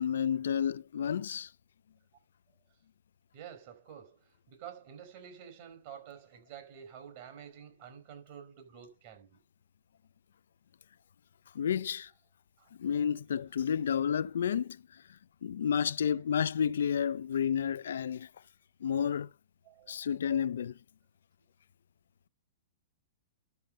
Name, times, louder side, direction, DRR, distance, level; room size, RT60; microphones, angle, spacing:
voice 1, 0.0-1.5 11.5-12.1 12.8-14.8 15.4-18.3 18.8-19.3 19.9-20.8, left 8 dB, 80° left, 0.5 m, -30 dB
voice 2, 3.3-9.4 12.6-12.7 19.6-20.1, right 8 dB, 45° right, 4.8 m, -49 dB
12.0 x 6.5 x 5.3 m
hypercardioid pair, 145°, 0 cm